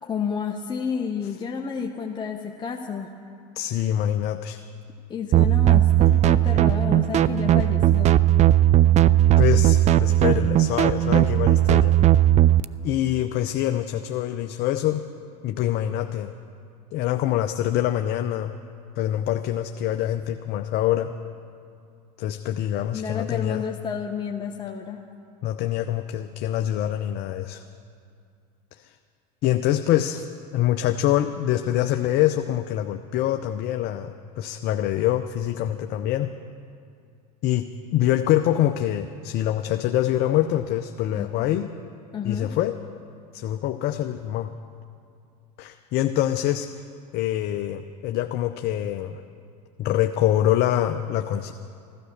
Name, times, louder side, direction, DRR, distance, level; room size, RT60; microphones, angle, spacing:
voice 1, 0.0-3.1 5.1-8.2 22.9-25.0 41.1-41.5 42.1-42.5, left 7 dB, 20° left, 1 dB, 0.9 m, -31 dB
voice 2, 3.6-4.6 9.4-12.0 12.8-15.0 15.4-16.3 16.9-18.5 19.0-21.1 22.2-23.6 25.4-27.6 28.8-28.9 29.4-30.2 30.5-36.3 37.4-41.7 42.2-42.7 43.3-44.5 45.6-46.7 47.1-49.2 49.8-51.5, left 12 dB, 50° left, 7 dB, 0.7 m, -25 dB
sound 1, 5.3-12.6, right 12 dB, 35° right, 0.4 m, -17 dB
15.5 x 12.5 x 6.6 m, 2.4 s
hypercardioid pair, 90°, 20 cm